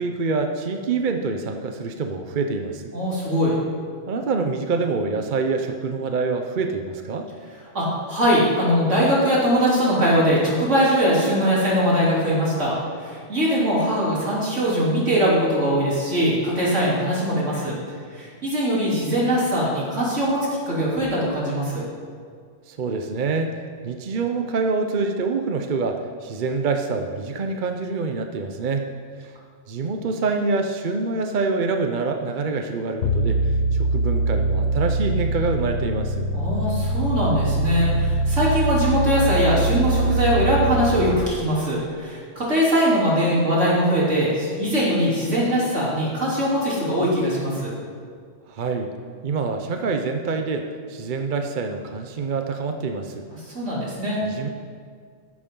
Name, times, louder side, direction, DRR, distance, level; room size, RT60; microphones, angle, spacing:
voice 1, 0.0-2.9 4.1-7.3 22.7-28.9 29.2-29.3 29.7-36.2 48.5-48.9 49.2-53.2 54.2-54.5, right 4 dB, 45° right, 5 dB, 0.7 m, -26 dB
voice 2, 2.9-3.5 7.7-17.8 18.1-21.8 36.3-47.7 53.3-54.2, equal, 65° right, -6 dB, 3.7 m, -21 dB
sound 1, 33.0-41.2, right 2 dB, 75° left, 1.2 m, -23 dB
14.0 x 11.0 x 3.8 m, 2.1 s
omnidirectional pair, 1.3 m